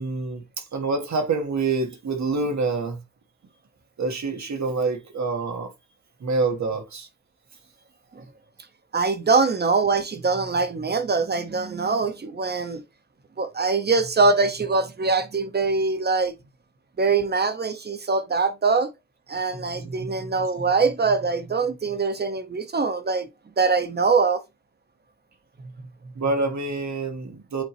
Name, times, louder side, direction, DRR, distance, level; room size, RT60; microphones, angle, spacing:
voice 1, 0.0-3.0 4.0-5.7 6.2-7.1 19.8-20.1 26.1-27.6, right 3 dB, 70° right, 1.5 m, -27 dB
voice 2, 8.9-12.8 13.4-16.3 17.0-18.9 19.3-23.3 23.6-24.4, right 4 dB, 35° right, 0.9 m, -23 dB
8.1 x 3.8 x 3.0 m
wide cardioid pair, 170°, 29 cm